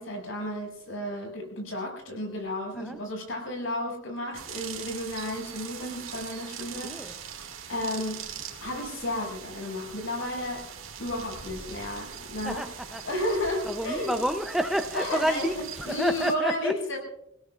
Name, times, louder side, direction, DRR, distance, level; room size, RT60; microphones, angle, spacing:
voice 1, 0.0-7.2 7.7-8.2 8.6-10.7 11.0-12.6 13.0-14.2 14.9-17.0, left 1 dB, 70° left, 2 dB, 6.0 m, -32 dB
sound 1, 4.3-16.3, right 7 dB, 80° right, 2.2 m, -41 dB
voice 2, 6.8-7.1 12.4-13.0 13.6-16.7, equal, ahead, 7 dB, 0.6 m, -29 dB
27.5 x 17.0 x 2.4 m, 0.74 s
head